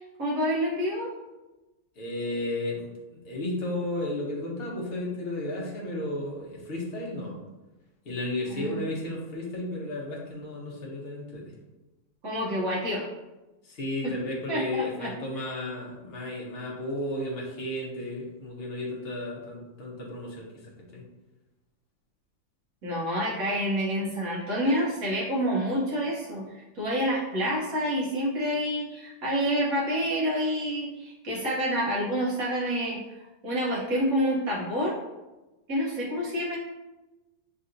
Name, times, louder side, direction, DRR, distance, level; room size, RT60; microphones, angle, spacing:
voice 1, 0.2-1.1 8.5-8.9 12.2-13.1 14.0-14.1 14.5-15.1 22.8-35.0 35.7-36.6, equal, 55° right, -5 dB, 1.2 m, -28 dB
voice 2, 2.0-2.9 3.2-7.3 8.0-11.5 13.6-21.0, left 1 dB, 40° left, -3 dB, 1.0 m, -33 dB
6.4 x 2.7 x 2.6 m, 1.1 s
omnidirectional pair, 2.0 m